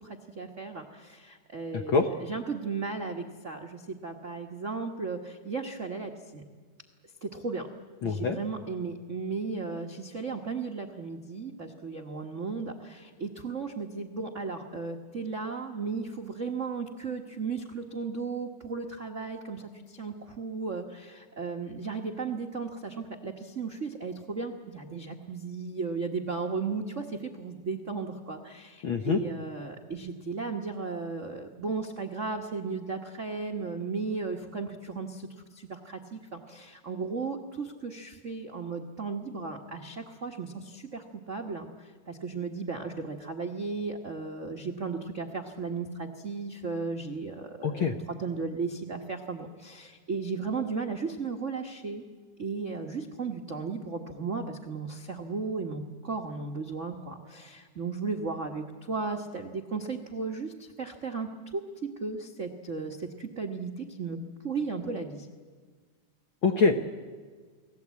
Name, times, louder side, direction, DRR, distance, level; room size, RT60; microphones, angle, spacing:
voice 1, 0.0-6.4 7.2-7.7 8.0-35.3 35.5-52.0 52.4-64.2 64.4-65.3, right 4 dB, 85° right, 2 dB, 0.6 m, -35 dB
voice 2, 1.7-2.0 8.0-8.4 28.8-29.2 47.6-47.9 66.4-66.7, left 5 dB, 65° left, 5 dB, 1.3 m, -24 dB
29.5 x 19.0 x 8.4 m, 1.5 s
omnidirectional pair, 3.6 m